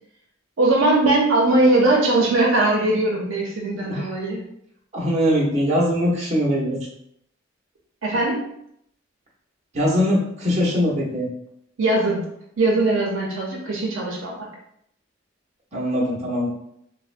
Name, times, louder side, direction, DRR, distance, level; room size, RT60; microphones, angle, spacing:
voice 1, 0.6-4.4 8.0-8.5 11.8-12.2 12.6-14.5, right 2 dB, 80° right, -2 dB, 0.6 m, -20 dB
voice 2, 4.9-6.8 9.7-11.3 15.7-16.5, equal, 35° right, -5 dB, 0.9 m, -21 dB
3.4 x 2.1 x 2.5 m, 0.73 s
head